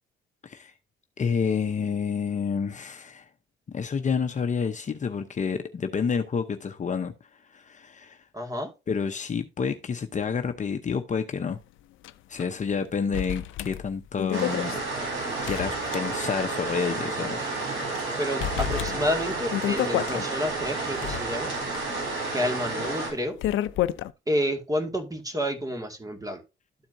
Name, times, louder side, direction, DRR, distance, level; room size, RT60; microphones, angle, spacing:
voice 1, 0.4-0.7 1.2-3.3 3.7-7.1 7.5-8.2 8.9-11.6 12.3-14.8 15.4-17.6, left 6 dB, 40° left, 0.8 m, -29 dB
voice 2, 8.3-8.7 18.2-21.5 22.3-23.4 24.3-26.4, equal, 15° right, 2.0 m, -29 dB
sound 1, 12.0-12.1 12.4-12.5 13.1-16.5 16.9-17.0 17.6-18.0 18.4-20.2 20.8-24.1, left 12 dB, 85° left, 0.5 m, -31 dB
sound 2, 14.3-23.1, right 3 dB, 80° right, 4.0 m, -31 dB
13.0 x 4.3 x 2.7 m
cardioid pair, 90°, 20 cm